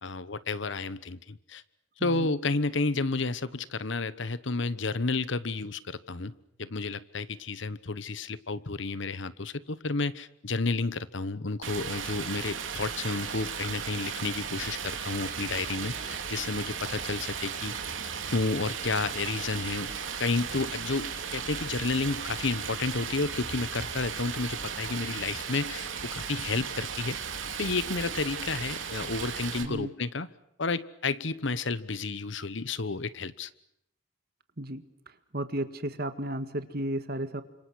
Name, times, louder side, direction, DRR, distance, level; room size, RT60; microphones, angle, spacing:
voice 1, 0.0-1.6 2.0-6.3 6.6-17.7 18.3-19.9 20.2-27.2 27.6-30.3 30.6-33.5, left 3 dB, 65° left, 16 dB, 1.0 m, -31 dB
voice 2, 2.0-2.3 29.6-29.9 34.6-34.8 35.3-37.4, right 1 dB, 50° right, 9 dB, 1.9 m, -33 dB
Stream, 11.6-29.6, right 6 dB, 70° right, 3.3 m, -36 dB
29.5 x 26.5 x 6.4 m, 0.77 s
head